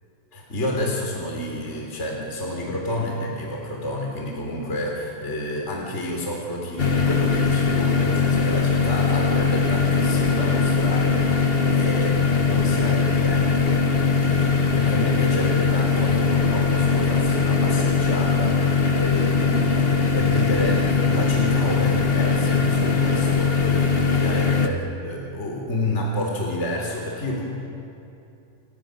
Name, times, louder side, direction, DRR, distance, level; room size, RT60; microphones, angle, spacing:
voice 1, 0.3-13.6 14.1-27.4, left 1 dB, 20° left, -1 dB, 3.7 m, -30 dB
sound 1, 6.8-24.7, left 5 dB, 70° left, 0.5 m, -20 dB
29.5 x 29.0 x 6.6 m, 2.7 s
omnidirectional pair, 3.5 m